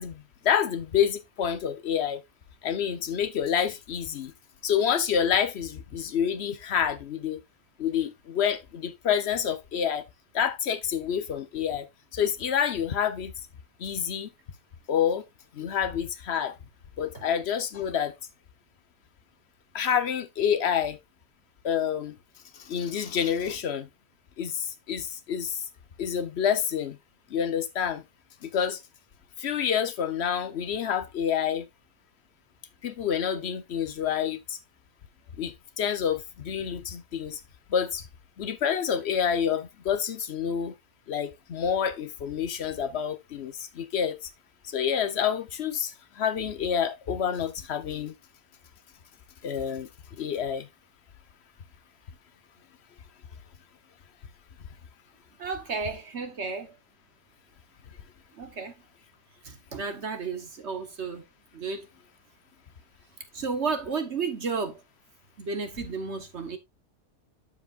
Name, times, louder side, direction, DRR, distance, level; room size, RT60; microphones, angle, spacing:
voice 1, 0.0-2.2 2.6-4.3 4.6-7.4 7.8-10.0 10.3-11.9 12.1-13.3 13.8-14.3 14.9-15.2 15.5-16.5 17.0-18.1 19.7-21.0 21.6-22.2 22.5-23.9 24.4-25.6 26.0-27.0 27.3-28.0 28.4-28.8 29.4-31.7 32.8-34.6 35.4-37.4 37.7-38.1 38.4-40.7 41.1-44.2 44.7-48.1 49.4-49.9 50.2-50.7, left 8 dB, 50° left, 1.0 m, -28 dB
voice 2, 55.4-56.7 58.3-58.7 59.4-61.3 61.5-61.9 63.3-64.8 65.4-66.6, right 4 dB, 50° right, 1.2 m, -32 dB
13.0 x 5.0 x 2.4 m
omnidirectional pair, 1.7 m